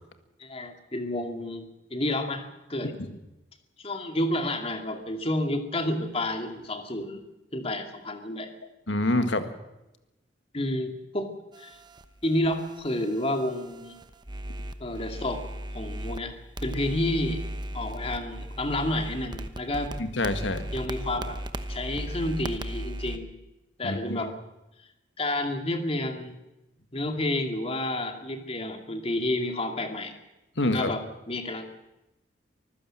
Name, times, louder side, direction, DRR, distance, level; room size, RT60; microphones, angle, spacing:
voice 1, 0.4-2.4 2.7-2.9 3.8-7.2 7.5-8.5 10.5-11.3 11.6-11.8 12.2-13.9 14.8-15.5 15.7-16.3 16.6-17.4 17.7-19.9 20.7-21.4 21.7-23.3 23.8-24.4 25.2-26.4 26.9-30.2 30.6-31.9, left 1 dB, 30° left, 5 dB, 2.3 m, -30 dB
voice 2, 8.9-9.5 20.0-20.7 23.8-24.3 30.6-30.9, left 1 dB, 75° left, 9 dB, 1.9 m, -27 dB
sound 1, 11.5-16.2 16.6-23.2, right 1 dB, 25° right, 1.0 m, -37 dB
24.5 x 15.5 x 7.6 m, 0.97 s
head